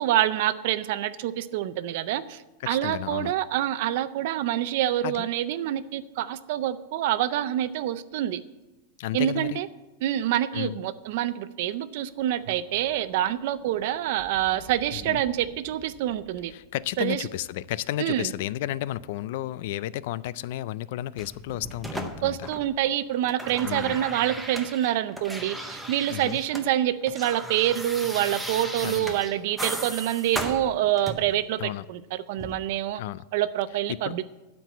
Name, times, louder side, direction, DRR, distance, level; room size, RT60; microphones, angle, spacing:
voice 1, 0.0-8.4 9.1-9.7 10.0-16.5 17.0-17.3 18.0-18.3 22.2-33.0 33.3-34.2, right 12 dB, 50° right, 0.5 m, -26 dB
voice 2, 2.6-3.3 5.0-5.3 9.0-9.6 10.5-10.8 14.9-15.2 16.5-22.5 23.6-24.0 26.1-26.4 28.6-29.2 31.6-31.9 32.9-33.3 33.9-34.2, left 14 dB, 50° left, 0.3 m, -33 dB
Thunder, 12.1-18.5 19.4-19.7, right 3 dB, 30° right, 1.2 m, -52 dB
sound 1, 21.2-22.9 23.1-26.7 26.9-31.4 32.4-32.5, right 1 dB, ahead, 0.7 m, -36 dB
12.0 x 4.6 x 8.2 m
supercardioid pair, 175°, 0 cm